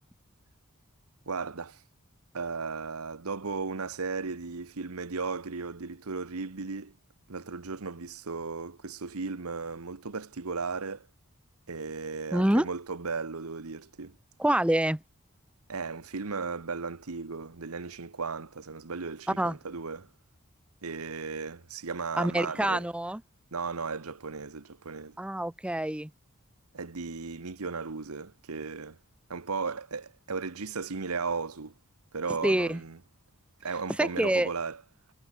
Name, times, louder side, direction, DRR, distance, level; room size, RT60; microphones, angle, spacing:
voice 1, 1.3-1.8 2.3-6.9 7.3-11.1 11.7-14.2 15.7-20.1 20.8-22.9 23.5-25.2 26.7-29.0 29.3-31.7 32.1-33.0 33.6-34.8, right 4 dB, 85° right, 1.1 m, -35 dB
voice 2, 12.3-12.7 14.4-15.0 19.4-19.6 22.2-23.2 25.2-26.1 32.4-32.8 34.0-34.5, right 1 dB, 5° right, 0.6 m, -26 dB
head